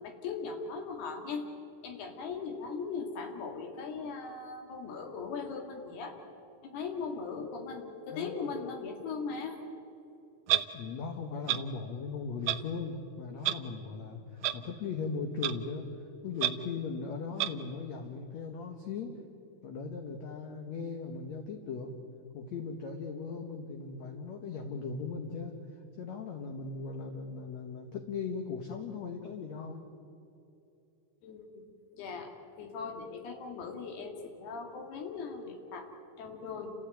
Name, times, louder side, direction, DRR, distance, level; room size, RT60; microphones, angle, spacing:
voice 1, 0.0-1.4 1.8-6.2 6.6-9.6 31.2-31.6 31.9-32.3 32.6-35.9 36.2-36.7, left 5 dB, 75° left, 4 dB, 4.1 m, -39 dB
voice 2, 8.1-8.5 10.7-15.9 16.2-19.2 19.6-22.0 22.3-25.6 26.0-29.8, left 5 dB, 60° left, 4 dB, 2.0 m, -38 dB
Clock, 10.5-10.6 11.5-11.6 12.5-12.6 13.4-13.5 14.4-14.5 15.4-15.5 16.4-16.5 17.4-17.5, right 13 dB, 80° right, 1.9 m, -27 dB
29.0 x 15.0 x 9.1 m, 2.7 s
omnidirectional pair, 4.6 m